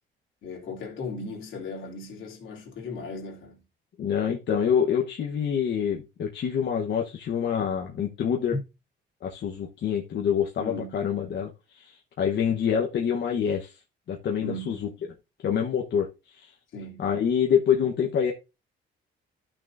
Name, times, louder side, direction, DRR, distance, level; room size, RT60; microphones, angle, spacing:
voice 1, 0.4-3.6 8.5-8.6 10.6-11.0 14.4-14.8 16.7-17.1, left 2 dB, 80° left, 3.0 m, -36 dB
voice 2, 4.0-8.6 9.2-13.8 14.1-14.8 15.4-16.5 17.0-18.3, left 8 dB, 60° left, 1.1 m, -26 dB
12.0 x 6.2 x 2.6 m
cardioid pair, 90°, 20 cm